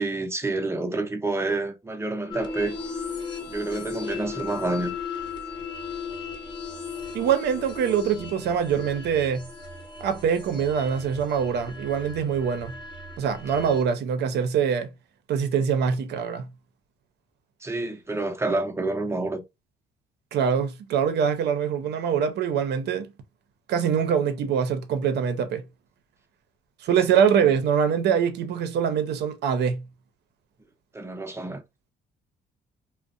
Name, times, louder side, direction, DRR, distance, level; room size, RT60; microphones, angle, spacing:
voice 1, 0.0-2.8 3.5-5.0 17.6-19.4 27.1-27.2 30.9-31.6, right 2 dB, 15° right, 0.6 m, -28 dB
sound 1, 2.3-13.8, left 4 dB, 25° left, 0.7 m, -37 dB
voice 2, 7.1-9.5 10.0-12.8 13.2-14.9 15.3-16.5 20.3-23.1 23.7-25.6 26.8-29.8, right 7 dB, 70° right, 0.6 m, -24 dB
2.4 x 2.0 x 2.5 m
cardioid pair, 85°, 18 cm